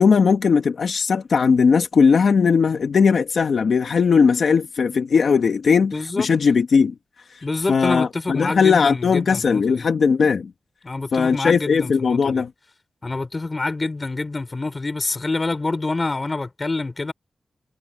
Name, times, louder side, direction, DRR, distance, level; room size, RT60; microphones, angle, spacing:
voice 1, 0.0-6.9 7.7-10.5 11.1-12.5, left 5 dB, 75° left, 1.6 m, -18 dB
voice 2, 5.9-6.3 7.4-9.8 10.8-12.4 13.0-17.1, left 3 dB, 30° left, 5.3 m, -26 dB
wide cardioid pair, 125°, 0 cm